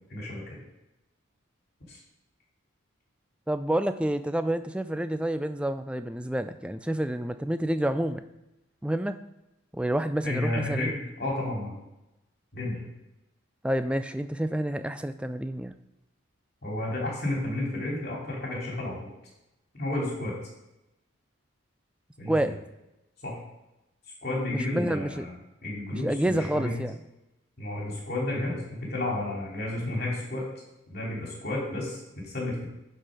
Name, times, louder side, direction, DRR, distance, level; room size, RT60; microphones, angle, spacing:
voice 1, 0.1-0.6 1.9-2.0 10.2-11.7 12.5-12.9 16.6-19.1 19.8-20.3 22.2-22.5 23.2-23.4 24.2-25.3 25.6-26.7 27.6-30.5 30.9-32.7, left 1 dB, 50° left, -3 dB, 2.7 m, -32 dB
voice 2, 3.5-8.2 8.8-9.2 9.7-10.9 13.6-15.7 22.3-22.6 24.5-25.3 25.9-27.0, right 1 dB, 5° right, 10 dB, 0.3 m, -28 dB
11.0 x 4.6 x 4.9 m, 0.95 s
head